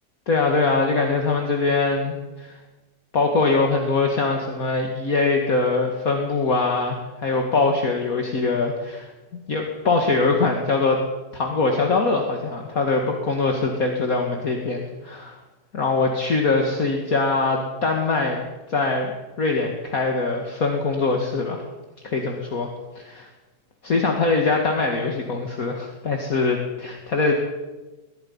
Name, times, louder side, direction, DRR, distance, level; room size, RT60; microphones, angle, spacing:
voice 1, 0.3-2.6 3.1-9.1 9.5-11.0 11.3-15.4 15.7-18.4 18.7-19.1 19.4-21.6 22.0-22.7 23.0-23.3 23.8-27.3, left 3 dB, 50° left, 2 dB, 2.4 m, -22 dB
22.5 x 21.0 x 5.6 m, 1.2 s
omnidirectional pair, 1.9 m